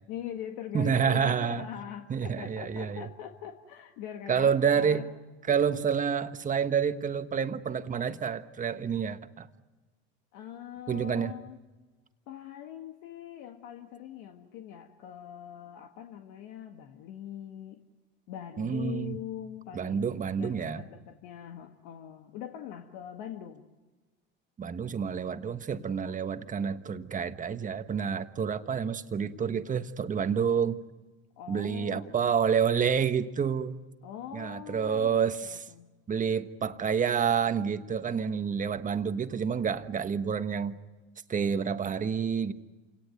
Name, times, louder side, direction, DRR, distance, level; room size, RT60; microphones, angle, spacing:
voice 1, 0.1-5.1 5.5-5.6 10.3-11.6 12.3-17.8 18.3-23.6 31.4-32.3 34.0-35.9, left 10 dB, 70° left, 4 dB, 1.8 m, -42 dB
voice 2, 0.7-1.6 2.1-3.0 4.3-5.0 5.5-9.5 10.9-11.3 18.6-19.2 19.7-20.8 24.6-30.8 31.5-33.8 34.3-35.6 36.1-40.7 41.3-42.5, right 7 dB, 25° right, 9 dB, 1.4 m, -28 dB
28.0 x 18.0 x 9.3 m, 1.3 s
supercardioid pair, 100°, 30 cm